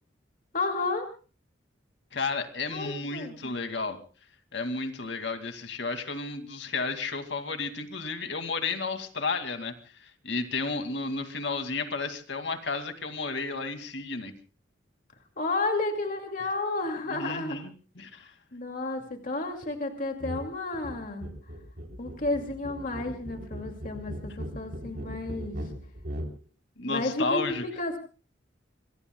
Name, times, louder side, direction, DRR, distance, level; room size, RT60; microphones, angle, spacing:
voice 1, 0.5-1.1 2.7-3.4 15.4-17.6 18.5-21.3 22.0-25.7 26.8-28.0, left 2 dB, 45° left, 4 dB, 2.4 m, -32 dB
voice 2, 2.1-4.0 4.5-9.7 10.0-14.3 17.1-18.3 26.8-27.6, left 4 dB, 70° left, 7 dB, 2.4 m, -32 dB
sound 1, 20.2-20.5 20.7-26.3, equal, 60° right, 3.8 m, -38 dB
27.0 x 23.0 x 2.3 m, 0.36 s
head